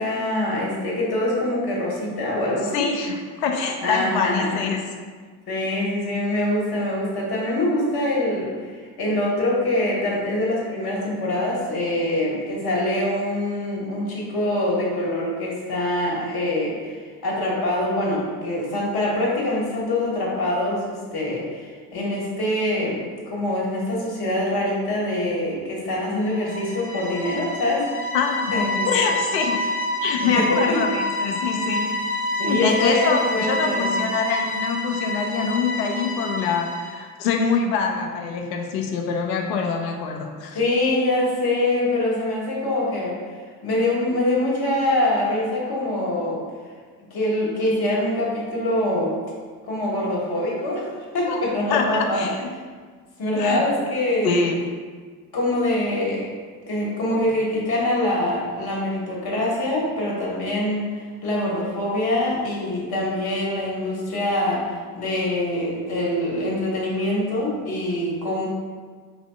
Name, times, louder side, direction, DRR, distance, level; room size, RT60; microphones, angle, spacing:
voice 1, 0.0-2.9 3.8-4.7 5.5-27.9 28.5-28.9 30.5-30.8 31.7-31.9 32.4-34.0 40.5-43.1 43.6-46.4 47.1-49.1 49.6-50.8 51.1-52.3 53.2-54.4 55.3-56.3 56.7-60.9 61.2-68.5, left 1 dB, 50° left, -4 dB, 1.4 m, -24 dB
voice 2, 2.7-4.8 28.1-28.5 28.9-29.7 30.0-32.0 32.4-40.6 51.3-51.4 51.7-52.5 53.4-53.6 54.2-54.6, left 5 dB, 85° left, 3 dB, 0.6 m, -25 dB
sound 1, 26.2-37.0, left 1 dB, 90° right, 1.4 m, -28 dB
5.1 x 2.5 x 2.3 m, 1.5 s
hypercardioid pair, 50°, 49 cm